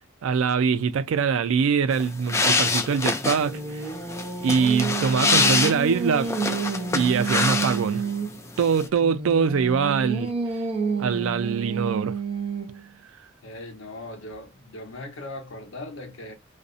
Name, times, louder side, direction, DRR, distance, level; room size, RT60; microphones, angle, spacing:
voice 1, 0.2-3.9 4.4-6.3 6.9-8.0 8.6-10.3 11.0-12.1, right 6 dB, 75° right, 0.3 m, -23 dB
sound 1, 1.9-8.1 8.4-8.9, left 3 dB, 15° left, 0.3 m, -25 dB
Singing, 3.0-8.4 9.0-12.9, right 5 dB, 30° right, 0.6 m, -30 dB
voice 2, 13.4-16.3, left 1 dB, 75° left, 0.9 m, -39 dB
2.5 x 2.0 x 2.4 m
head